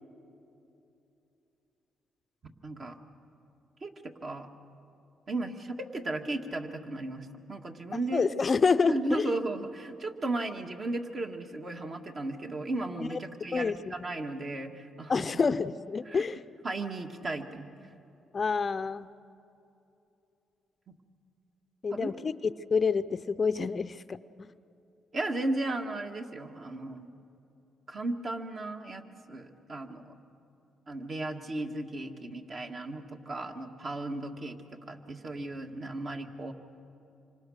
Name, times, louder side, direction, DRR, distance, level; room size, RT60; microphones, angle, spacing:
voice 1, 2.6-3.0 3.8-4.5 5.3-8.3 8.9-15.3 16.1-16.2 16.6-17.7 21.9-22.1 22.4-22.5 25.1-27.1 27.9-30.1 30.9-34.6 34.9-36.5, right 2 dB, 45° right, 4 dB, 1.8 m, -35 dB
voice 2, 7.9-9.3 13.0-13.1 13.5-13.9 15.1-16.4 18.3-19.1 21.8-22.3 22.7-24.2, left 5 dB, 35° left, 13 dB, 0.5 m, -28 dB
27.0 x 25.0 x 6.5 m, 2.8 s
cardioid pair, 90°, 0 cm